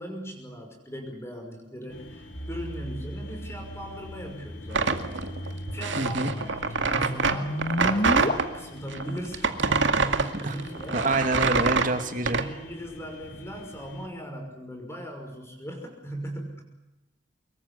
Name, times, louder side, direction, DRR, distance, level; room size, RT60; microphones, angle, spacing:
voice 1, 0.0-5.1 5.4-11.2 12.2-16.6, right 1 dB, 15° left, 3 dB, 5.8 m, -38 dB
sound 1, 1.9-14.1, left 2 dB, 80° left, 4.8 m, -46 dB
sound 2, 2.3-8.3, equal, 45° left, 2.7 m, -33 dB
sound 3, 4.7-8.5 8.9-12.5, right 4 dB, 85° right, 2.2 m, -25 dB
voice 2, 6.0-6.3 10.4-10.5 10.9-12.4, right 2 dB, 45° right, 8 dB, 2.6 m, -26 dB
25.0 x 22.5 x 8.5 m, 0.98 s
head